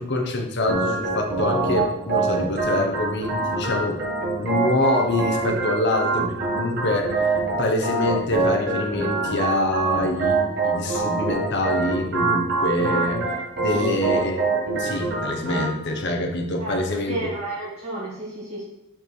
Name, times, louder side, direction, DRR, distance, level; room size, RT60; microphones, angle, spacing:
voice 1, 0.0-4.0 4.4-10.4 10.6-14.4 14.8-17.3, left 1 dB, 50° left, 2 dB, 1.0 m, -25 dB
Organ, 0.7-15.7, right 3 dB, 45° right, 1.5 m, -25 dB
voice 2, 16.6-18.6, right 1 dB, 30° right, -7 dB, 2.6 m, -32 dB
5.7 x 4.9 x 4.6 m, 0.84 s
head